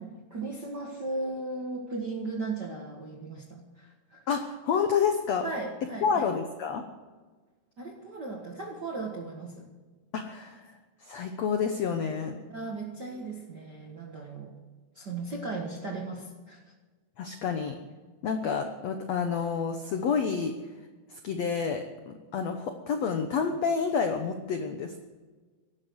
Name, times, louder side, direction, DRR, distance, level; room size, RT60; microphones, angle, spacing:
voice 1, 0.0-4.2 5.4-6.3 7.8-9.7 12.5-14.5 14.9-16.6, right 3 dB, 85° right, 0 dB, 0.9 m, -37 dB
voice 2, 4.3-5.5 6.0-6.8 10.1-10.6 11.0-12.4 17.2-17.8 18.2-20.5 21.1-25.0, left 6 dB, 90° left, 6 dB, 1.4 m, -29 dB
16.5 x 12.0 x 6.4 m, 1.3 s
omnidirectional pair, 4.6 m